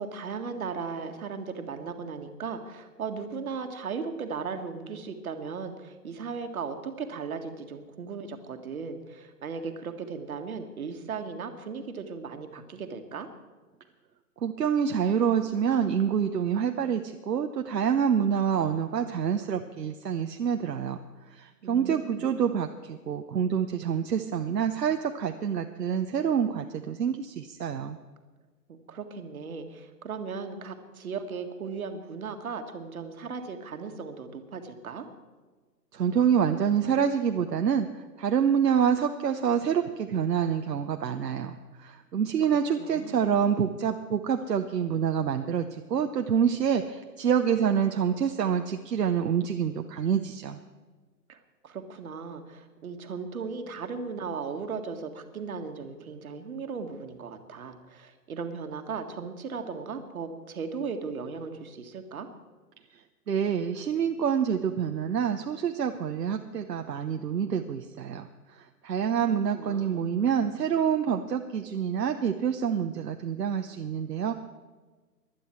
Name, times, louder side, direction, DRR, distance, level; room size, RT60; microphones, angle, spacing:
voice 1, 0.0-13.3 21.6-22.3 28.7-35.1 42.1-42.3 42.8-43.3 51.3-51.4 51.6-62.3 69.5-70.1, right 5 dB, 55° right, 6 dB, 1.8 m, -37 dB
voice 2, 14.4-21.0 21.3-28.0 35.9-37.9 38.2-50.6 63.3-68.3 68.8-74.3, right 8 dB, 75° right, 6 dB, 1.0 m, -27 dB
20.0 x 11.5 x 4.5 m, 1.4 s
figure-of-eight pair, 140°, 49 cm